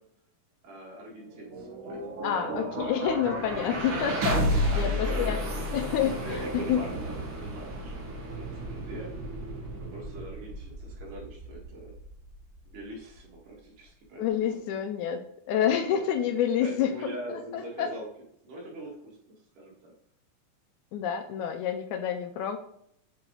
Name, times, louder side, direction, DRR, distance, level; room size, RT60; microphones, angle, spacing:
voice 1, 0.6-2.8 4.6-5.4 6.1-9.1 9.7-11.9 12.7-14.6 15.9-16.3 16.6-18.1 18.4-19.9, right 1 dB, 75° right, -3 dB, 3.3 m, -42 dB
sound 1, 1.2-13.3, equal, 50° right, 1.8 m, -32 dB
voice 2, 2.2-5.4 5.7-6.2 6.7-6.8 14.2-15.2 15.5-17.9 20.9-22.6, left 9 dB, 80° left, 7 dB, 1.9 m, -28 dB
7.4 x 4.0 x 3.8 m, 0.69 s
omnidirectional pair, 3.7 m